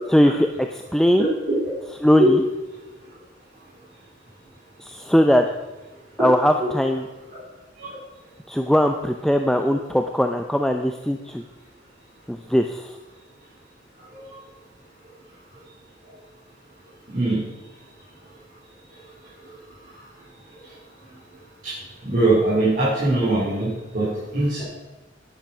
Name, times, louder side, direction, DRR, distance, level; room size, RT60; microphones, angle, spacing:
voice 1, 0.1-1.3 2.0-2.5 4.8-5.4 6.2-7.1 8.5-11.4 12.3-12.9, equal, ahead, 4 dB, 0.4 m, -20 dB
voice 2, 17.1-17.4 21.6-21.7 22.0-24.6, right 2 dB, 45° right, -9 dB, 4.1 m, -21 dB
10.0 x 8.9 x 6.0 m, 1.1 s
head